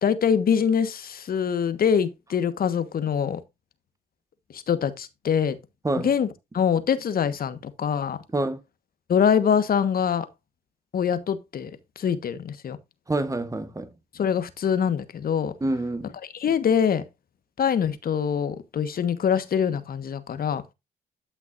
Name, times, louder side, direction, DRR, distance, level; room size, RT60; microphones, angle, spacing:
voice 1, 0.0-3.4 4.5-5.6 6.0-6.3 6.5-8.2 9.1-10.3 10.9-11.7 12.0-12.8 14.1-15.5 16.3-17.0 17.6-20.6, left 7 dB, 60° left, 1.3 m, -24 dB
voice 2, 13.1-13.9 15.6-16.1, right 2 dB, 20° right, 1.7 m, -27 dB
12.0 x 6.0 x 2.5 m
supercardioid pair, 65°, 17 cm